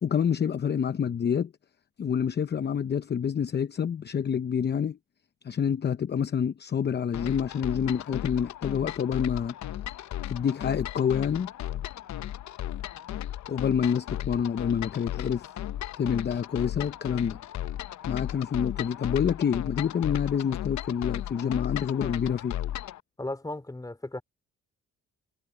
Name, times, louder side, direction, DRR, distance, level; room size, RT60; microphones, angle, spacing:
voice 1, 0.0-1.5 2.0-5.0 5.4-9.5 10.3-11.5 13.5-15.5 16.0-17.4 18.1-22.6, left 7 dB, 35° left, 0.7 m, -27 dB
sound 1, 7.1-23.0, left 12 dB, 65° left, 0.9 m, -35 dB
voice 2, 23.2-24.2, left 2 dB, 10° left, 2.9 m, -35 dB
cardioid pair, 90°, 30 cm